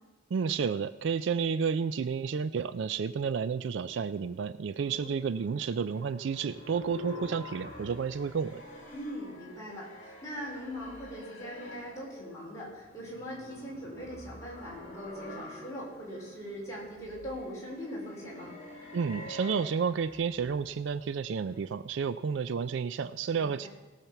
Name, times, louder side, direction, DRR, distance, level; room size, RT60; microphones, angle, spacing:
voice 1, 0.3-8.6 18.9-23.7, right 6 dB, 60° right, 14 dB, 0.3 m, -31 dB
sound 1, 4.8-21.7, left 1 dB, 35° left, 2.8 m, -48 dB
voice 2, 4.8-5.2 8.9-18.6 23.3-23.7, equal, 15° left, -5 dB, 4.1 m, -41 dB
17.5 x 5.9 x 7.0 m, 1.2 s
head